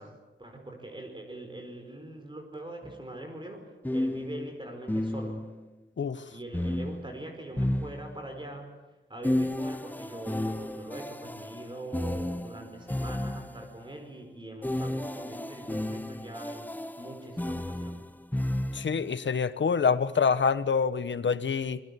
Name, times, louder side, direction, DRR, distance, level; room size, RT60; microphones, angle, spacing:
voice 1, 0.0-5.5 6.3-8.8 9.1-18.0, right 1 dB, 25° right, 4 dB, 4.7 m, -43 dB
sound 1, 2.8-3.0 3.8-5.7 6.5-8.5 9.2-13.8 14.6-19.1, left 1 dB, 10° left, 0.8 m, -33 dB
voice 2, 18.7-21.8, left 6 dB, 70° left, 13 dB, 1.3 m, -26 dB
26.5 x 22.0 x 8.3 m, 1.1 s
wide cardioid pair, 105°, 20 cm